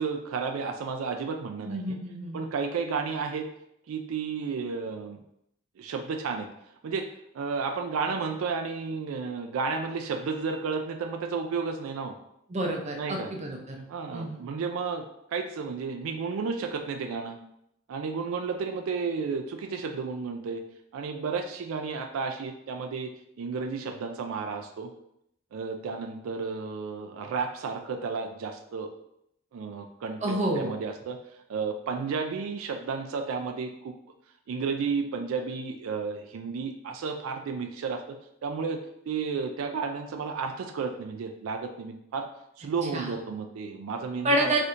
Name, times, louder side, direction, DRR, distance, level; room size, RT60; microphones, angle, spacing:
voice 1, 0.0-2.0 2.3-3.5 3.9-5.2 5.8-6.5 6.8-7.1 7.3-12.1 12.9-13.3 13.9-17.4 17.9-20.6 20.9-24.9 25.5-28.9 29.5-31.2 31.5-33.9 34.5-42.3 42.6-44.6, right 5 dB, 85° right, 5 dB, 0.4 m, -32 dB
voice 2, 1.7-2.5 12.5-13.9 14.1-14.5 30.2-30.7 42.9-43.1 44.2-44.6, right 1 dB, 35° right, 1 dB, 0.5 m, -29 dB
4.3 x 2.6 x 2.5 m, 0.77 s
head